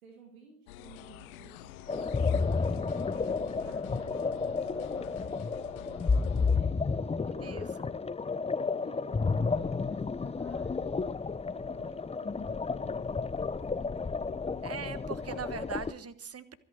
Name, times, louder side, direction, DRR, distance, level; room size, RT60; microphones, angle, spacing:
voice 1, 0.0-2.9 3.5-7.9 8.6-11.0 11.4-14.5, right 3 dB, 80° right, 1 dB, 2.5 m, -56 dB
sound 1, 0.7-6.6, left 13 dB, 75° left, 1.0 m, -48 dB
sound 2, 1.9-15.9, left 4 dB, 15° left, 0.7 m, -31 dB
voice 2, 7.3-7.9 14.6-16.6, right 6 dB, 35° right, 14 dB, 1.4 m, -41 dB
25.0 x 9.0 x 4.7 m, 0.63 s
figure-of-eight pair, 45°, 42 cm